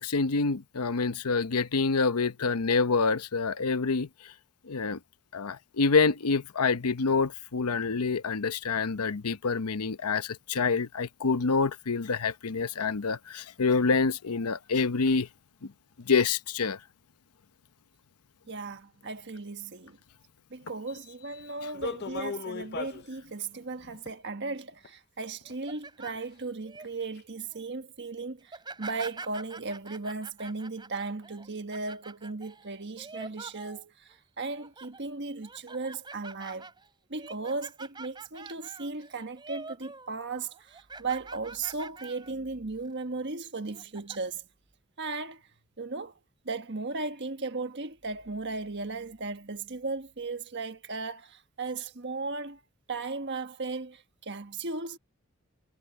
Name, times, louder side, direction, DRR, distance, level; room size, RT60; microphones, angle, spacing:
voice 1, 0.0-4.3 4.7-5.0 5.3-15.3 15.6-15.7 16.0-16.8, left 4 dB, 90° left, 0.8 m, -27 dB
voice 2, 18.5-20.0 20.5-36.7 37.1-44.4 45.0-45.4 45.8-46.1 46.4-52.6 52.9-55.0, right 3 dB, 50° right, 1.5 m, -36 dB
sound 1, 21.7-23.1 24.1-24.2 24.8-24.9 25.4-25.5 26.1-26.2 26.8-26.9 27.2-27.3, left 4 dB, 45° left, 0.6 m, -36 dB
sound 2, 25.4-26.9 27.3-27.6 28.4-34.2 34.5-35.0 35.4-40.1 40.4-42.3 42.7-42.9 43.6-44.2, right 3 dB, 20° right, 3.3 m, -45 dB
head